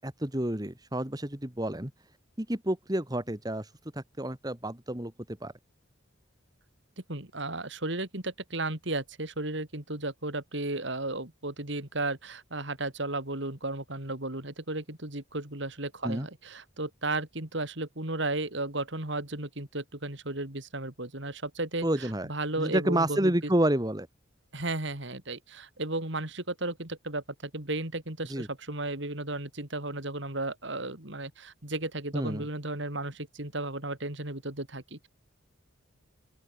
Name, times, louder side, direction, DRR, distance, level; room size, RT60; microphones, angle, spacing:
voice 1, 0.0-1.9 2.4-3.7 3.9-5.5 16.0-16.3 21.8-22.3 22.6-24.1 28.3-28.5 32.1-32.5, right 1 dB, 20° right, 1.8 m, -29 dB
voice 2, 7.1-23.5 24.5-35.1, right 2 dB, 60° right, 3.4 m, -34 dB
open air
head